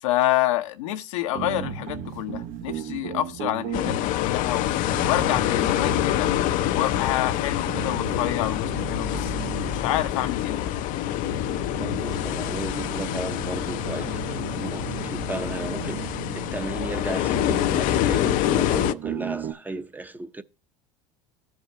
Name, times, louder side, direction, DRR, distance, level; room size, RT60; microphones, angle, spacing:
voice 1, 0.0-4.7 5.1-6.3 6.7-9.3 9.7-10.7, left 14 dB, 80° left, 0.8 m, -27 dB
sound 1, 1.3-19.5, right 9 dB, 60° right, 0.8 m, -37 dB
sound 2, 3.7-18.9, left 12 dB, 55° left, 0.5 m, -26 dB
voice 2, 11.7-20.4, right 2 dB, 10° right, 0.6 m, -35 dB
14.5 x 4.9 x 2.7 m
supercardioid pair, 90°, 16 cm